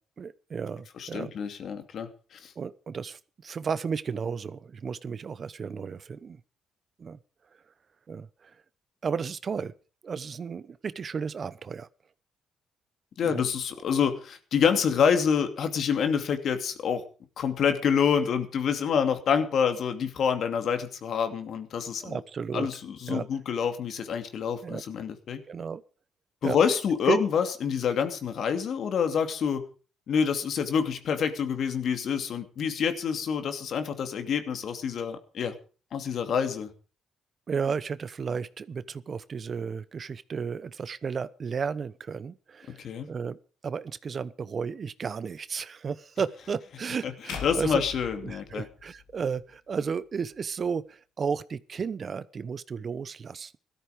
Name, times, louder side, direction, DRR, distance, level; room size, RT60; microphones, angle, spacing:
voice 1, 0.2-1.3 2.6-6.4 7.0-7.2 8.1-8.6 9.0-9.7 10.0-11.9 13.2-13.4 22.0-22.7 23.1-23.3 24.6-24.8 25.4-25.8 26.4-26.6 27.1-27.2 37.5-47.8 48.2-53.6, right 6 dB, 45° right, 0.9 m, -33 dB
voice 2, 1.0-2.5 13.2-17.0 17.4-22.2 22.5-25.4 26.4-29.6 30.1-35.6 35.9-36.7 42.7-43.1 47.0-47.1 47.4-48.7, left 7 dB, 65° left, 2.6 m, -27 dB
sound 1, 47.3-49.5, left 7 dB, 90° left, 2.9 m, -41 dB
16.0 x 13.5 x 5.1 m
cardioid pair, 90°, 0 cm